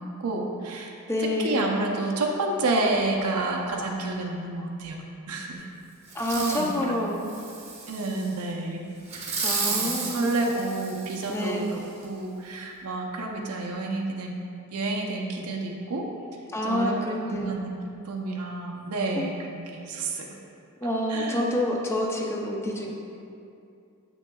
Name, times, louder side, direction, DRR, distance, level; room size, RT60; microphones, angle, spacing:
voice 1, 0.0-5.6 6.4-7.0 7.9-8.8 9.1-9.4 9.7-14.3 14.7-16.1 16.6-17.0 17.3-17.8 18.0-20.3 21.1-21.4, right 2 dB, 90° right, -1 dB, 0.6 m, -30 dB
voice 2, 1.1-1.8 6.1-7.2 9.4-10.3 11.3-11.8 16.5-17.6 20.8-22.9, left 1 dB, 10° left, -1 dB, 0.5 m, -28 dB
Fireworks, 6.1-6.7 7.2-8.3 9.1-11.5 12.0-12.1, right 4 dB, 30° right, 0.8 m, -32 dB
7.9 x 5.9 x 2.3 m, 2.6 s
head